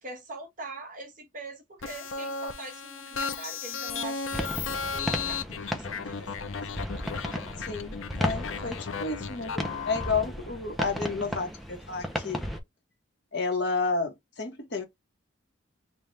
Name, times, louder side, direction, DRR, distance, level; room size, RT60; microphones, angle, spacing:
voice 1, 0.0-4.2 4.8-6.6, right 2 dB, 40° right, 1.3 m, -42 dB
sound 1, 1.8-10.1, left 5 dB, 85° left, 0.5 m, -35 dB
sound 2, 4.3-12.6, equal, ahead, 0.6 m, -35 dB
voice 2, 7.7-9.5 9.9-12.4 13.3-14.9, left 4 dB, 55° left, 1.2 m, -31 dB
3.4 x 2.4 x 4.2 m
head